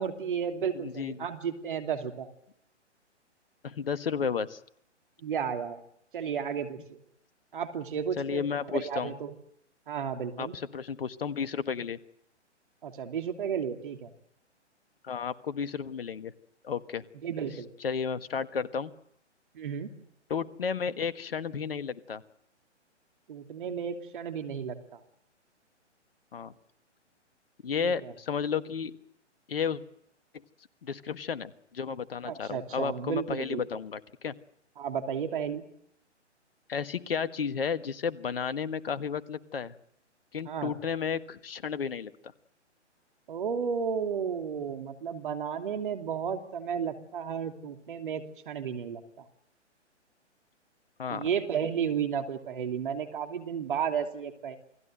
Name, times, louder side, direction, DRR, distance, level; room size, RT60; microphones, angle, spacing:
voice 1, 0.0-2.3 5.2-5.8 6.1-7.0 7.5-9.3 9.9-10.5 12.8-14.1 17.2-17.7 19.5-19.9 23.3-25.0 27.8-28.1 32.2-33.6 34.8-35.6 40.4-40.7 43.3-49.2 51.1-54.6, right 7 dB, 45° right, 6 dB, 2.9 m, -33 dB
voice 2, 0.7-1.2 3.6-4.6 8.2-9.1 10.4-12.0 15.0-16.3 16.6-17.0 17.8-18.9 20.3-22.2 26.3-26.5 27.6-28.9 29.5-29.8 30.8-34.3 36.7-39.8 40.3-42.3 51.0-51.3, left 6 dB, 55° left, 13 dB, 1.6 m, -32 dB
28.5 x 19.5 x 7.9 m, 0.73 s
figure-of-eight pair, 130°, 36 cm